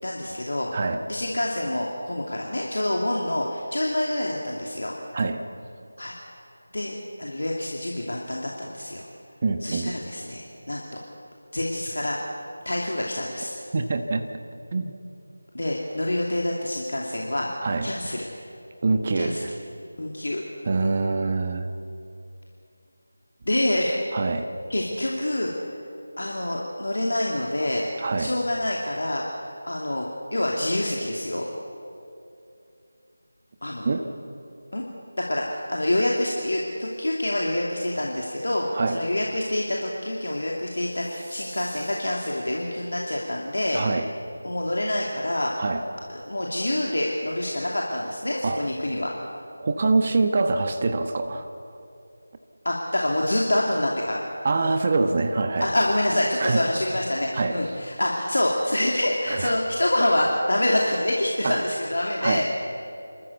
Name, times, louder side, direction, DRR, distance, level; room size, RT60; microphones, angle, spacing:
voice 1, 0.0-0.7 1.1-4.9 6.0-6.2 6.7-9.0 9.6-11.0 11.5-12.2 12.6-13.5 15.5-17.5 17.8-18.3 19.2-19.4 20.0-20.4 23.4-23.9 24.7-25.5 26.2-27.9 28.2-31.5 33.6-33.9 34.7-34.8 35.2-43.8 44.4-45.5 46.1-49.1 52.6-54.2 55.6-62.5, left 1 dB, 70° left, -2 dB, 2.6 m, -26 dB
voice 2, 9.4-9.9 13.7-14.3 14.7-14.9 17.6-17.9 18.8-19.5 20.7-21.7 24.1-24.5 28.0-28.3 33.8-34.0 38.7-39.0 43.7-44.1 45.6-45.8 48.4-48.7 49.6-51.5 54.4-55.7 56.4-56.6 57.3-57.6 59.3-59.5 61.4-61.6 62.2-62.5, right 3 dB, 35° right, 7 dB, 1.2 m, -24 dB
sound 1, 40.6-43.1, right 1 dB, 10° right, 6.4 m, -48 dB
28.5 x 13.5 x 8.1 m, 2.7 s
figure-of-eight pair, 165°, 0 cm